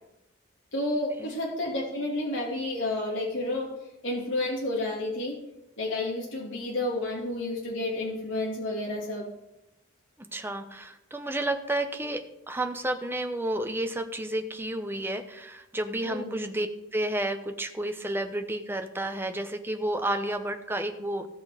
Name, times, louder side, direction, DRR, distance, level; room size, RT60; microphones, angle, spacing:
voice 1, 0.7-3.7 4.0-5.4 5.8-9.3 16.0-16.4, left 2 dB, 65° left, -3 dB, 2.4 m, -30 dB
voice 2, 10.3-16.7 16.9-21.3, right 1 dB, 10° right, 6 dB, 0.8 m, -31 dB
16.5 x 5.9 x 5.0 m, 0.88 s
head